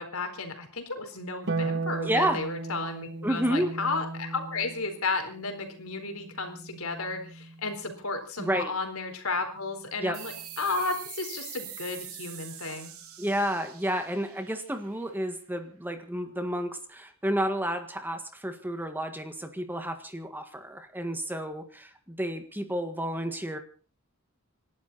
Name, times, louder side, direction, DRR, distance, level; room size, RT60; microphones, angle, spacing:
voice 1, 0.0-12.9, left 3 dB, 70° left, 6 dB, 4.2 m, -33 dB
Harp, 1.5-8.0 9.6-10.6, right 3 dB, 55° right, 1.5 m, -37 dB
voice 2, 2.0-2.4 3.2-3.7 8.4-8.7 10.0-10.2 13.2-23.6, right 1 dB, 10° right, 7 dB, 1.7 m, -30 dB
sound 1, 10.1-15.3, right 10 dB, 85° right, 3.3 m, -44 dB
27.5 x 12.0 x 4.2 m, 0.38 s
head